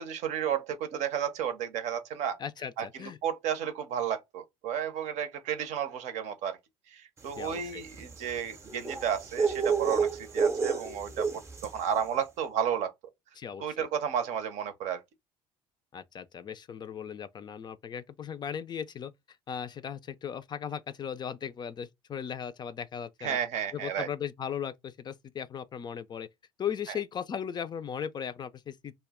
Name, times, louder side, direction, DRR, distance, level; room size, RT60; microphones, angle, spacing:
voice 1, 0.0-2.4 2.8-6.6 6.9-10.1 10.3-11.3 11.6-12.9 13.6-15.0 23.2-24.1, right 8 dB, 60° right, 0.6 m, -32 dB
voice 2, 2.4-3.2 7.4-7.8 13.4-13.9 15.9-19.1 19.5-23.4 23.7-26.3 26.6-28.9, left 8 dB, 35° left, 0.3 m, -37 dB
sound 1, 7.3-11.9, right 5 dB, 20° right, 0.6 m, -30 dB
2.2 x 2.0 x 3.5 m
supercardioid pair, 80°, 13 cm